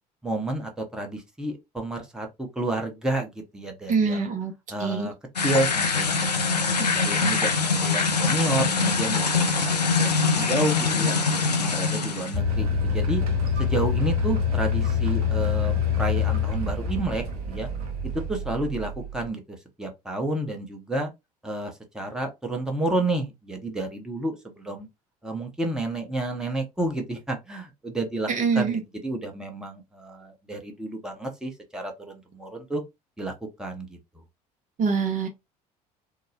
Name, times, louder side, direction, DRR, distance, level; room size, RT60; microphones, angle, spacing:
voice 1, 0.2-4.3 4.7-5.1 5.4-9.5 9.8-11.2 11.6-13.2 13.6-17.7 18.1-21.1 21.4-24.9 25.2-32.8 33.2-33.3 33.6-34.2, right 2 dB, 5° right, 0.8 m, -30 dB
voice 2, 3.9-4.5 4.8-5.1 6.8-6.9 28.3-28.8 34.8-35.3, right 5 dB, 40° right, 0.7 m, -24 dB
sound 1, 5.4-12.4, left 4 dB, 85° left, 0.4 m, -23 dB
sound 2, 12.3-19.3, left 6 dB, 70° right, 0.8 m, -26 dB
3.7 x 2.0 x 2.7 m
figure-of-eight pair, 55°, 20 cm